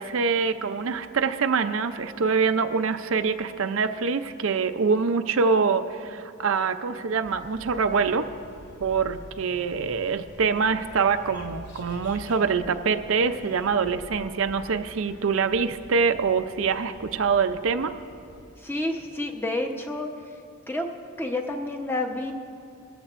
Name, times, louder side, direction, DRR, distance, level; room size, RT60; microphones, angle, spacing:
voice 1, 0.0-8.3 8.8-17.9, right 5 dB, 65° right, 9 dB, 0.5 m, -25 dB
sound 1, 7.2-18.5, equal, 50° left, 2.3 m, -47 dB
voice 2, 18.6-20.1 20.7-20.9 21.2-22.3, left 2 dB, 10° left, 2 dB, 0.8 m, -29 dB
21.0 x 14.0 x 2.5 m, 2.5 s
head